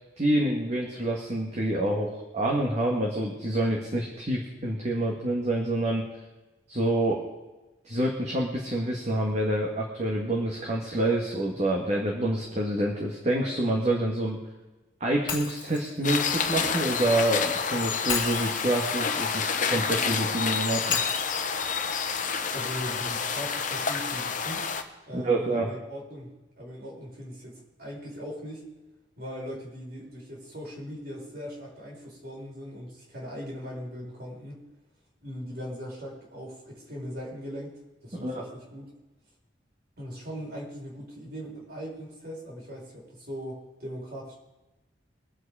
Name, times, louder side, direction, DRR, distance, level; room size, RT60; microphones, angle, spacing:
voice 1, 0.2-6.1 6.7-7.2 7.9-14.4 15.0-21.0 25.1-25.7 38.1-38.4, right 1 dB, 40° right, -2 dB, 1.9 m, -27 dB
Shatter, 15.3-17.3 18.1-20.2 20.9-23.0, left 5 dB, 25° left, 2.4 m, -36 dB
sound 1, 16.0-24.8, left 6 dB, 45° left, 1.1 m, -29 dB
voice 2, 22.5-24.6 25.1-28.7 29.2-34.6 35.2-37.7 38.0-38.8 40.0-44.3, equal, 55° right, -3 dB, 5.3 m, -39 dB
23.0 x 8.0 x 5.0 m, 1.1 s
head